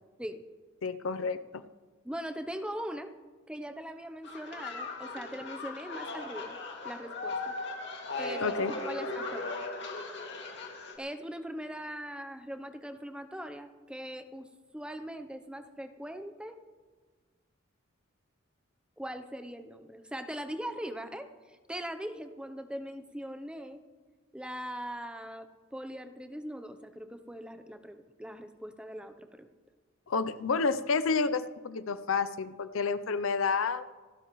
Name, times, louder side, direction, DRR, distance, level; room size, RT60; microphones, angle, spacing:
voice 1, 0.8-1.6 8.4-8.7 30.1-33.9, left 4 dB, 80° left, 13 dB, 0.6 m, -30 dB
voice 2, 2.0-3.1 3.5-6.6 6.8-7.5 8.2-9.5 11.0-14.5 14.7-16.6 19.0-23.8 24.3-29.5, equal, 5° right, 8 dB, 0.6 m, -41 dB
sound 1, 4.2-11.0, left 3 dB, 55° left, 2.3 m, -38 dB
27.0 x 12.5 x 3.1 m, 1.4 s
head